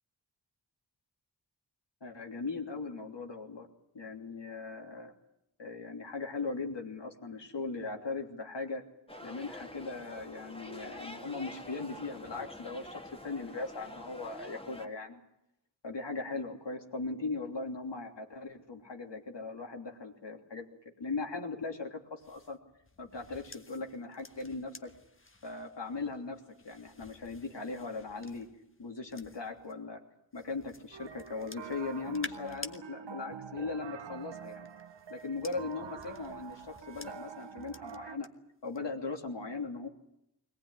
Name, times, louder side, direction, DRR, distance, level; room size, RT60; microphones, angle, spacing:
voice 1, 2.0-3.7 3.9-5.1 5.6-8.8 9.2-15.2 15.8-20.7 21.0-22.6 23.0-24.9 25.4-28.5 28.8-30.0 30.3-34.7 35.1-38.3 38.6-39.9, left 3 dB, 80° left, 2 dB, 3.2 m, -39 dB
sound 1, 9.1-14.9, left 1 dB, 15° left, 2.2 m, -47 dB
sound 2, 22.2-29.7 30.3-32.8 34.0-38.3 38.6-39.0, left 2 dB, 30° left, 1.5 m, -52 dB
sound 3, 30.9-38.2, right 7 dB, 90° right, 0.9 m, -46 dB
22.0 x 18.5 x 9.9 m, 0.82 s
wide cardioid pair, 50°, 42 cm